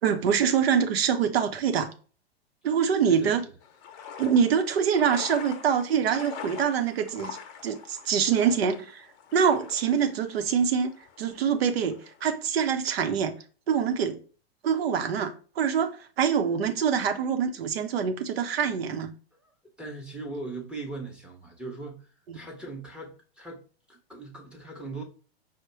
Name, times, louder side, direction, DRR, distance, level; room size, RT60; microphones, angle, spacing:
voice 1, 0.0-1.9 2.6-3.5 4.2-7.4 7.6-10.9 11.2-13.4 13.7-14.2 14.6-19.1 22.3-22.4, right 7 dB, 70° right, 0.8 m, -25 dB
sound 1, 3.6-12.3, left 7 dB, 40° left, 0.7 m, -44 dB
voice 2, 19.8-25.0, right 2 dB, 5° right, 0.7 m, -39 dB
4.9 x 2.1 x 4.3 m
hypercardioid pair, 110°, 32 cm